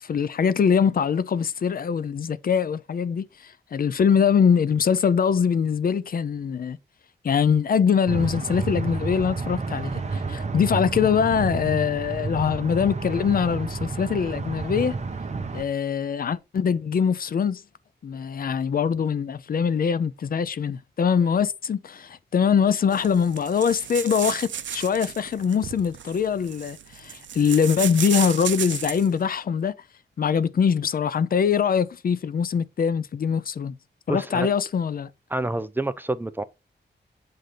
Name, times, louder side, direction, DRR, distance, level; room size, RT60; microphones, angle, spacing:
voice 1, 0.0-6.8 7.2-15.0 15.5-17.6 18.0-29.7 30.2-33.8 34.1-35.1, left 7 dB, 55° left, 0.4 m, -23 dB
sound 1, 8.1-15.6, right 4 dB, 40° right, 0.8 m, -30 dB
sound 2, 22.9-29.1, right 9 dB, 85° right, 0.5 m, -33 dB
voice 2, 34.1-34.5 35.3-36.4, right 2 dB, 10° right, 0.4 m, -28 dB
7.5 x 2.6 x 4.9 m
wide cardioid pair, 150°, 19 cm